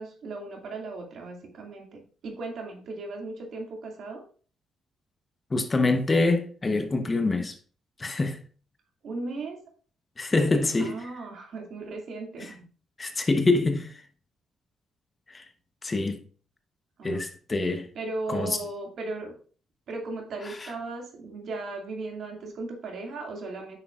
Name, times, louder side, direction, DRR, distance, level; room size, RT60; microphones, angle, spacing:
voice 1, 0.0-4.2 9.0-9.6 10.8-12.6 17.0-17.2 17.9-19.3 19.9-23.8, right 3 dB, 65° right, 2.3 m, -37 dB
voice 2, 5.5-7.6 8.0-8.4 10.2-11.0 13.0-14.0 15.3-15.5 15.8-16.2 17.0-17.9 18.3-18.6 20.6-20.7, left 3 dB, 25° left, 1.0 m, -25 dB
9.2 x 6.3 x 2.5 m
cardioid pair, 90°, 0 cm